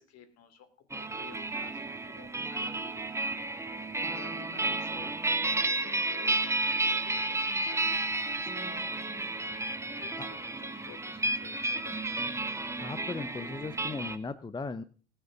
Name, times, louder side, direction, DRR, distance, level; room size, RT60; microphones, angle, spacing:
voice 1, 0.0-3.1 4.0-5.1 5.6-8.8 10.0-12.3, left 8 dB, 50° left, 10 dB, 3.2 m, -53 dB
sound 1, 0.9-14.2, right 2 dB, 10° right, 1.1 m, -32 dB
voice 2, 12.8-14.8, left 4 dB, 15° left, 14 dB, 0.7 m, -38 dB
19.5 x 6.8 x 6.0 m, 0.40 s
supercardioid pair, 95°, 32 cm